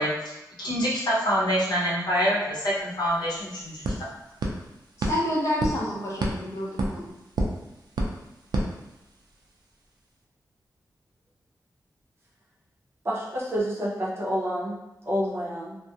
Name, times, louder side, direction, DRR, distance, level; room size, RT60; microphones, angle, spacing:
voice 1, 0.0-4.1, equal, 80° left, -6 dB, 0.7 m, -26 dB
sound 1, 2.7-2.8 3.1-9.5, right 1 dB, 80° right, 0.4 m, -32 dB
voice 2, 5.0-7.1, left 1 dB, 45° left, -4 dB, 0.7 m, -28 dB
voice 3, 13.0-14.8 15.0-15.8, equal, 35° right, -6 dB, 0.6 m, -28 dB
2.3 x 2.0 x 2.7 m, 0.95 s
wide cardioid pair, 145°, 7 cm